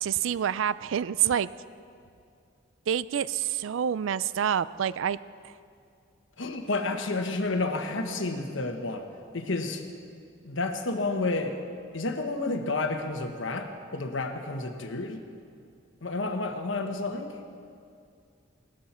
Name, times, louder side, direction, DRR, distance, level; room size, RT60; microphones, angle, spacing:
voice 1, 0.0-1.5 2.9-5.2 5.4-5.5, right 9 dB, 75° right, 17 dB, 0.4 m, -27 dB
voice 2, 6.4-9.1 9.3-9.8 10.4-11.6 11.9-15.2 16.0-17.4, left 3 dB, 70° left, 5 dB, 1.2 m, -30 dB
18.5 x 13.0 x 4.4 m, 2.4 s
head